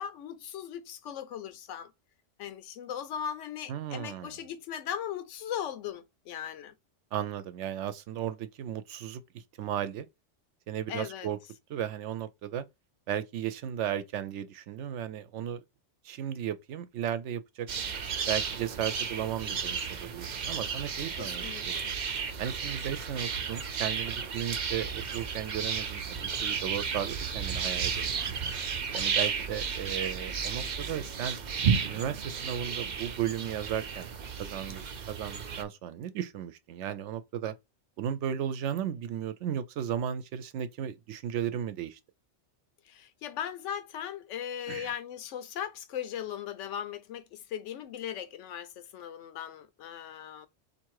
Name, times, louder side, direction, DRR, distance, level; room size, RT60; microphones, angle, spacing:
voice 1, 0.0-1.9 2.4-6.7 10.9-11.3 21.1-22.0 42.8-50.5, left 9 dB, 85° left, 0.9 m, -38 dB
voice 2, 3.7-4.4 7.1-10.1 10.7-11.4 11.7-12.6 13.1-15.6 16.0-17.7 18.3-21.8 22.4-28.2 28.9-31.4 31.8-34.1 34.4-37.5 38.0-42.0 44.7-44.9, right 10 dB, 75° right, 0.9 m, -35 dB
sound 1, 17.7-35.6, right 6 dB, 50° right, 0.6 m, -33 dB
3.7 x 2.7 x 4.6 m
omnidirectional pair, 1.2 m